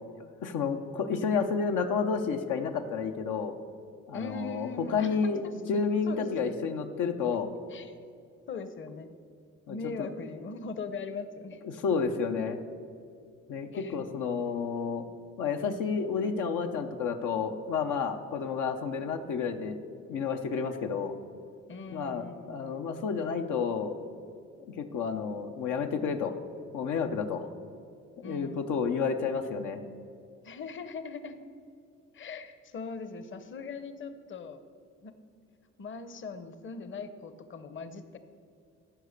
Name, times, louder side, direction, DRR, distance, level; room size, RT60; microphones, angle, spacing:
voice 1, 0.4-3.6 4.1-5.4 5.7-7.5 9.7-10.1 11.6-12.6 13.5-15.1 15.4-19.8 20.1-21.2 21.9-24.0 24.7-26.3 26.7-27.5 28.2-29.8, left 5 dB, 85° left, 5 dB, 0.8 m, -30 dB
voice 2, 4.1-5.2 5.4-6.6 7.7-7.9 8.5-9.1 9.7-11.6 13.7-14.0 21.7-22.8 28.2-28.6 30.4-31.4 32.1-34.6 35.0-35.1 35.8-38.2, left 4 dB, 40° left, 11 dB, 0.8 m, -40 dB
14.5 x 5.8 x 6.6 m, 2.4 s
cardioid pair, 90°, 30 cm